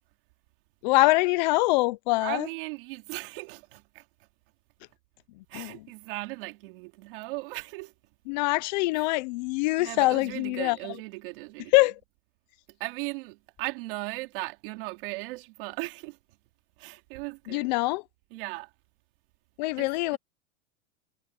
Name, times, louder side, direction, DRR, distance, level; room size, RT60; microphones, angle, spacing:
voice 1, 0.8-2.5 5.5-5.8 8.3-10.8 11.7-12.0 17.5-18.0 19.6-20.2, left 22 dB, 40° left, 0.6 m, -24 dB
voice 2, 2.2-4.0 5.5-7.9 8.9-9.1 9.8-11.9 12.8-16.2 16.8-17.7 18.3-18.7 19.8-20.2, right 24 dB, 50° right, 2.9 m, -37 dB
supercardioid pair, 160°, 35 cm